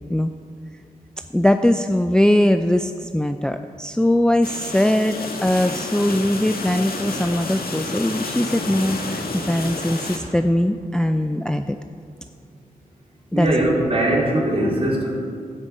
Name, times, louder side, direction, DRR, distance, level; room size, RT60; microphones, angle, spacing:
voice 1, 1.3-11.8 13.3-13.5, left 1 dB, 5° left, 8 dB, 0.4 m, -20 dB
sound 1, 4.4-10.2, left 3 dB, 80° left, 1.5 m, -30 dB
voice 2, 13.3-15.1, right 1 dB, 40° right, -4 dB, 3.5 m, -20 dB
13.0 x 5.3 x 8.3 m, 2.3 s
cardioid pair, 60°, 15 cm